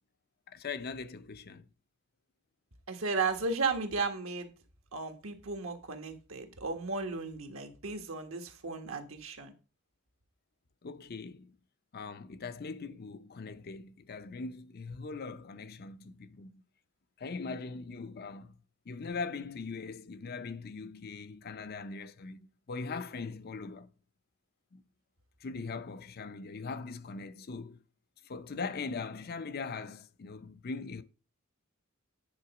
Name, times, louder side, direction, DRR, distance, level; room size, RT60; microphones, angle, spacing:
voice 1, 0.5-1.7 10.8-11.5 11.9-16.6 17.2-18.5 18.9-23.9 24.7-24.8 25.4-27.8 28.3-31.0, left 4 dB, 45° left, 0.5 m, -41 dB
voice 2, 2.9-4.5 4.9-9.5, right 4 dB, 70° right, 1.4 m, -34 dB
9.6 x 3.9 x 5.9 m
head